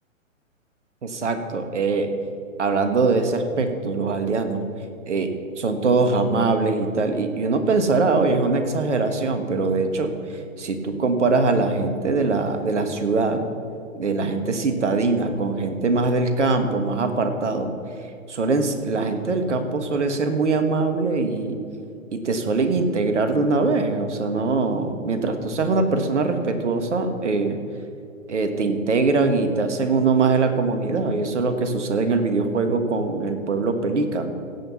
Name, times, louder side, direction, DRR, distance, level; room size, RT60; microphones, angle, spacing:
voice 1, 1.0-2.1 2.6-4.6 5.1-13.4 14.0-17.7 18.3-21.6 22.1-27.6 28.3-34.3, right 3 dB, 60° right, 7 dB, 1.5 m, -22 dB
16.5 x 5.8 x 7.1 m, 2.6 s
figure-of-eight pair, 125°, 40 cm